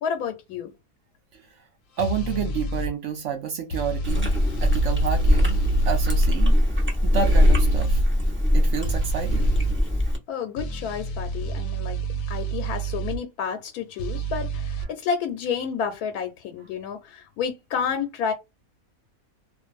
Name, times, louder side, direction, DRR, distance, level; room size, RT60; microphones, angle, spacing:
voice 1, 0.0-0.7 10.3-12.0 12.3-18.3, left 7 dB, 90° left, 1.1 m, -30 dB
sound 1, 2.0-2.9 3.7-6.3 7.1-8.0 8.8-9.8 10.6-13.2 14.0-14.8, right 3 dB, 70° left, 0.9 m, -28 dB
voice 2, 2.0-4.3 4.6-5.6 5.9-6.5 7.0-8.0 8.5-9.5 14.8-14.9, right 7 dB, 65° right, 0.8 m, -29 dB
Chewing mastication, 4.0-10.2, left 1 dB, 10° right, 0.5 m, -21 dB
2.5 x 2.4 x 2.4 m
omnidirectional pair, 1.6 m